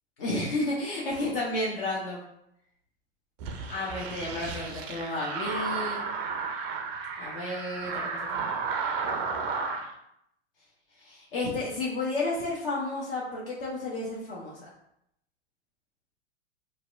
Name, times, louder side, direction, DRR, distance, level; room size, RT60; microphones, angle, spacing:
voice 1, 0.2-2.2 3.7-6.0 7.2-8.4 11.0-14.7, left 2 dB, 55° left, -6 dB, 0.8 m, -32 dB
sound 1, 3.4-9.8, right 5 dB, 30° right, 0.4 m, -33 dB
2.8 x 2.1 x 2.4 m, 0.77 s
figure-of-eight pair, 95°, 33 cm